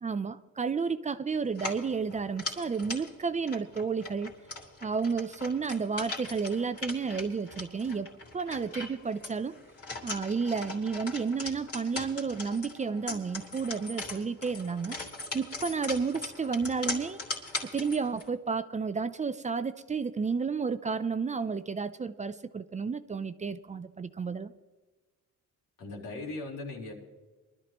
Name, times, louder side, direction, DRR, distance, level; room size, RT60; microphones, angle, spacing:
voice 1, 0.0-4.3 4.8-9.5 10.0-15.0 15.3-17.2 17.7-24.5, right 5 dB, 25° right, 12 dB, 0.5 m, -31 dB
sound 1, 1.5-18.3, left 2 dB, 50° left, 3.0 m, -40 dB
voice 2, 25.8-26.9, left 2 dB, 90° left, -1 dB, 3.6 m, -38 dB
23.5 x 12.5 x 3.0 m, 1.3 s
cardioid pair, 135°, 31 cm